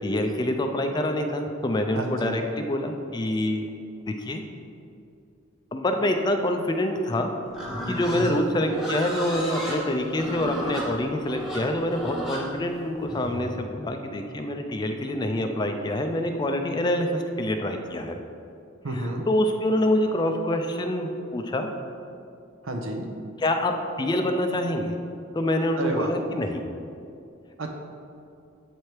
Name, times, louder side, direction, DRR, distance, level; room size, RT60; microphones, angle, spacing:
voice 1, 0.0-3.7 4.1-4.4 5.7-7.3 7.9-18.2 19.3-21.7 23.4-25.0 25.3-26.7, left 1 dB, 20° left, 5 dB, 0.4 m, -26 dB
voice 2, 1.9-2.4 8.1-8.4 18.8-19.3 22.6-23.1 25.8-26.1 27.6-27.7, right 1 dB, 80° right, 3 dB, 0.7 m, -30 dB
Livestock farm animals working animals, 7.5-13.6, equal, ahead, 0.9 m, -33 dB
8.1 x 3.2 x 4.4 m, 2.5 s
head